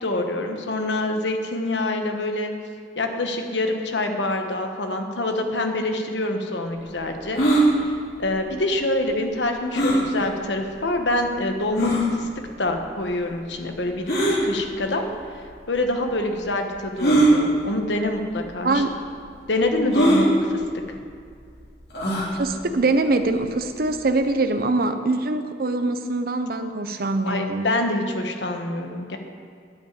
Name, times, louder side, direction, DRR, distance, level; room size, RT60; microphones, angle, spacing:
voice 1, 0.0-2.5 3.0-7.4 8.2-12.3 12.6-14.1 14.4-15.0 15.7-18.8 19.5-20.6 27.2-29.2, left 2 dB, 85° left, 4 dB, 1.3 m, -26 dB
sound 1, 7.3-7.6 9.7-10.0 10.8-10.9 11.8-12.0 14.1-14.4 15.4-15.5 17.0-17.3 18.2-18.4 18.6-18.7 19.9-20.2 21.9-22.3, right 1 dB, 60° left, 2.7 m, -19 dB
voice 2, 22.3-27.7, right 2 dB, 55° right, 9 dB, 0.7 m, -23 dB
11.0 x 5.8 x 8.9 m, 2.2 s
head